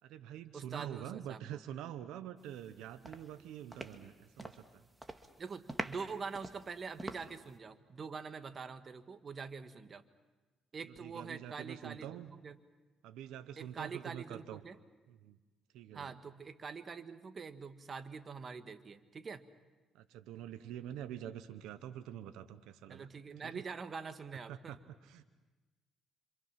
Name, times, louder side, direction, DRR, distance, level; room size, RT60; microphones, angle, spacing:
voice 1, 0.0-4.8 10.9-12.3 13.0-14.6 15.1-15.4 15.7-16.1 19.9-23.1 23.4-23.6 24.5-25.2, right 11 dB, 85° right, 10 dB, 0.9 m, -46 dB
voice 2, 0.5-1.6 5.4-10.0 10.7-12.5 13.6-14.8 15.9-19.5 22.9-24.8, right 5 dB, 40° right, 9 dB, 1.5 m, -45 dB
sound 1, 2.5-2.7 3.0-4.7 5.0-5.3 5.7-7.5, right 2 dB, 15° right, 1.9 m, -44 dB
27.0 x 26.5 x 5.9 m, 1.2 s
cardioid pair, 85°, 0 cm